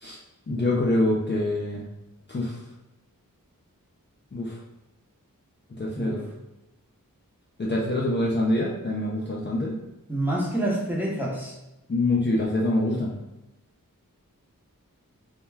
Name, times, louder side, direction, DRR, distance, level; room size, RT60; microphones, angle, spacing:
voice 1, 0.5-1.8 2.3-2.6 4.3-4.6 5.8-6.3 7.6-9.8 11.9-13.1, left 1 dB, 35° left, -4 dB, 0.4 m, -25 dB
voice 2, 10.1-11.5, right 1 dB, 5° right, -4 dB, 0.7 m, -27 dB
2.2 x 2.2 x 3.2 m, 0.96 s
wide cardioid pair, 50°, 34 cm